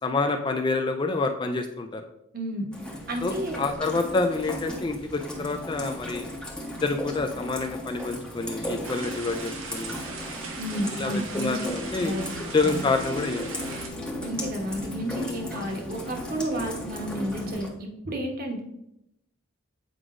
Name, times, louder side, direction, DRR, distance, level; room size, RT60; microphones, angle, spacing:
voice 1, 0.0-2.1 3.2-6.3 6.8-10.0 10.9-12.2 12.5-13.8 15.1-15.3 16.5-16.7, left 3 dB, 25° left, 6 dB, 0.3 m, -28 dB
voice 2, 2.3-2.6 3.1-3.6 10.6-11.7 12.0-12.2 12.6-12.9 14.2-18.6, right 1 dB, 45° right, 2 dB, 1.0 m, -31 dB
Rain, 2.7-17.7, equal, 5° left, 0.7 m, -37 dB
sound 1, 8.8-13.9, right 4 dB, 80° right, 1.0 m, -39 dB
sound 2, 11.6-17.5, left 2 dB, 45° left, 1.1 m, -41 dB
7.8 x 4.9 x 2.5 m, 0.81 s
head